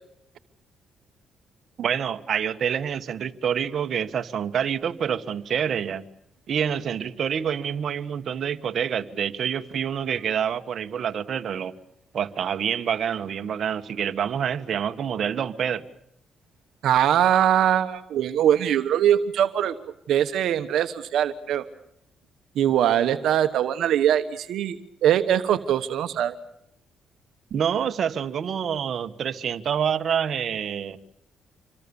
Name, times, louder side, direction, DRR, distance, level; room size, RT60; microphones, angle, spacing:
voice 1, 1.8-6.0 6.5-11.7 12.1-15.8 27.5-31.0, right 8 dB, 60° right, 9 dB, 1.4 m, -27 dB
voice 2, 16.8-19.7 20.1-21.6 22.6-26.3, right 10 dB, 75° right, 9 dB, 1.2 m, -22 dB
27.0 x 24.0 x 7.1 m, 0.77 s
cardioid pair, 90°, 0 cm